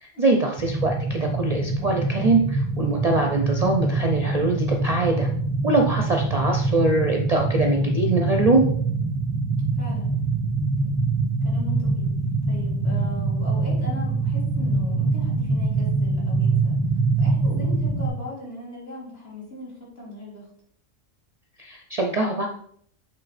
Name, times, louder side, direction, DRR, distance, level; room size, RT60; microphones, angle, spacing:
voice 1, 0.0-5.3 5.6-8.7 21.6-22.5, right 3 dB, 40° right, 2 dB, 0.6 m, -23 dB
sound 1, 0.6-18.1, right 3 dB, 5° left, 0.8 m, -24 dB
voice 2, 9.8-10.1 11.4-12.1 12.5-16.7 17.2-20.5, left 1 dB, 55° left, -5 dB, 3.0 m, -38 dB
7.8 x 3.7 x 4.2 m, 0.64 s
omnidirectional pair, 1.3 m